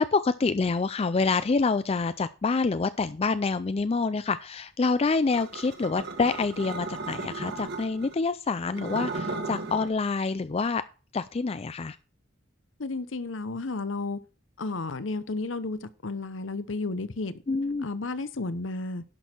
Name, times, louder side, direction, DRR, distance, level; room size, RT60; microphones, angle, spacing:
voice 1, 0.0-10.8 11.1-12.0 17.5-17.8, left 4 dB, 30° left, 0.4 m, -27 dB
sound 1, 5.3-8.1 8.7-9.9, right 3 dB, 55° right, 1.9 m, -35 dB
voice 2, 12.8-14.2 14.6-17.4 17.8-19.0, left 3 dB, 70° left, 0.9 m, -32 dB
11.0 x 6.3 x 4.4 m
head